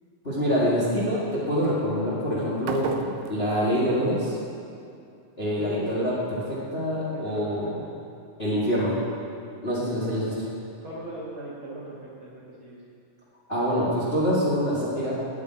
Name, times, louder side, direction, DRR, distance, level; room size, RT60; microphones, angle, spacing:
voice 1, 0.2-2.9 3.3-4.4 5.4-7.8 8.4-9.0 9.6-10.3 13.5-15.1, equal, 25° left, -7 dB, 1.6 m, -25 dB
sound 1, 2.6-4.7, right 8 dB, 85° right, 2.3 m, -36 dB
voice 2, 5.6-5.9 7.0-8.0 9.8-10.0 10.8-12.8, right 1 dB, 45° right, -6 dB, 2.0 m, -39 dB
8.7 x 7.4 x 8.8 m, 2.4 s
omnidirectional pair, 3.9 m